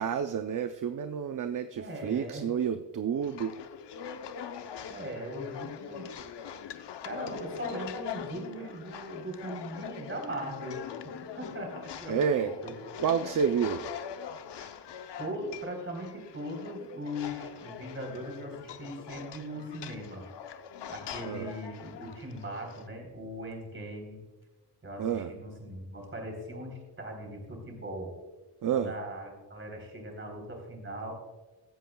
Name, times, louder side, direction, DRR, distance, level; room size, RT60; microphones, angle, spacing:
voice 1, 0.0-3.5 12.1-12.5 13.0-13.9 21.2-21.5 25.0-25.3 28.6-28.9, right 7 dB, 50° right, 8 dB, 0.6 m, -29 dB
voice 2, 1.8-2.5 4.9-6.2 7.0-10.8 11.4-12.7 13.2-13.3 14.6-14.8 15.2-20.3 20.9-24.2 24.8-28.1 28.7-31.1, equal, 30° right, 1 dB, 3.9 m, -40 dB
sound 1, 3.2-22.9, left 8 dB, 75° left, 0.8 m, -42 dB
16.0 x 13.5 x 2.3 m, 1.2 s
wide cardioid pair, 130°, 42 cm